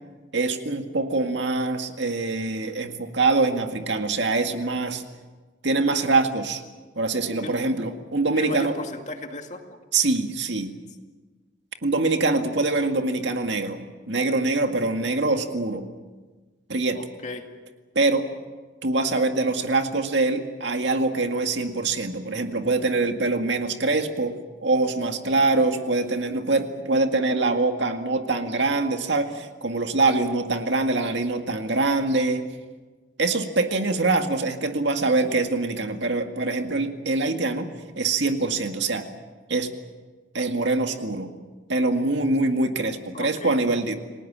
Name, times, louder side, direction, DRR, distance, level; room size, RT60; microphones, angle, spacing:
voice 1, 0.3-5.0 5.6-6.6 7.0-8.8 9.9-10.7 11.8-15.9 16.7-17.0 18.0-18.3 18.8-24.4 24.6-32.5 33.2-37.7 38.0-39.1 39.5-39.7 40.3-41.3 41.7-43.9, right 3 dB, 70° right, 5 dB, 2.0 m, -24 dB
voice 2, 8.4-9.6 16.9-17.4 43.1-43.5, left 2 dB, 40° left, 4 dB, 2.3 m, -34 dB
30.0 x 19.5 x 7.5 m, 1.3 s
head